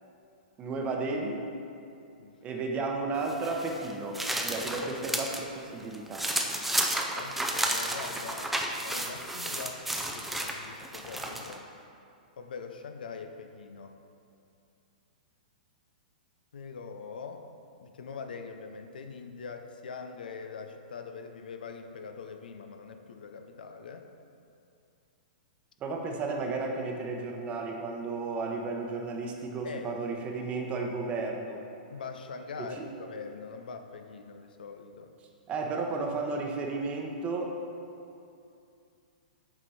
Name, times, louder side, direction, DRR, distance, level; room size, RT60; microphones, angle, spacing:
voice 1, 0.6-1.4 2.4-6.3 25.8-31.6 32.6-32.8 35.5-37.6, right 3 dB, 25° right, 2 dB, 0.8 m, -33 dB
sound 1, 3.3-5.4 5.8-11.6, right 1 dB, 5° right, 0.5 m, -32 dB
voice 2, 7.1-11.6 12.4-14.0 16.5-17.5 17.8-24.1 29.6-30.0 31.9-35.1, left 5 dB, 75° left, 6 dB, 0.6 m, -43 dB
7.8 x 4.4 x 4.2 m, 2.6 s
hypercardioid pair, 125°, 5 cm